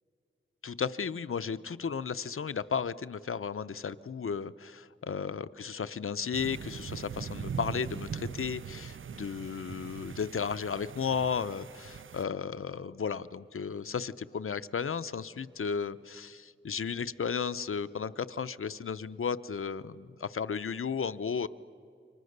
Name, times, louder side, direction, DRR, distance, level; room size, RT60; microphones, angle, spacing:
voice 1, 0.6-21.5, left 6 dB, 85° left, 13 dB, 0.7 m, -34 dB
sound 1, 6.3-12.2, right 7 dB, 70° right, 0.5 m, -41 dB
29.0 x 24.5 x 6.7 m, 2.5 s
wide cardioid pair, 55°, 21 cm